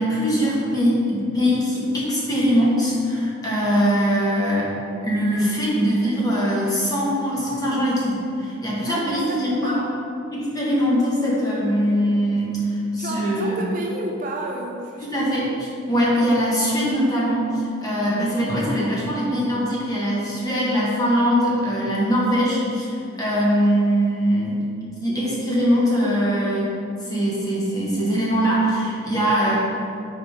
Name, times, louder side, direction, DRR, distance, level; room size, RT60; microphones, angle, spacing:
voice 1, 0.0-4.7 5.0-9.7 10.3-13.6 15.1-26.8 27.0-29.6, equal, 15° left, -6 dB, 1.1 m, -22 dB
voice 2, 8.9-10.0 13.0-15.1, right 1 dB, 40° right, 0 dB, 0.4 m, -31 dB
5.3 x 3.9 x 4.7 m, 2.6 s
head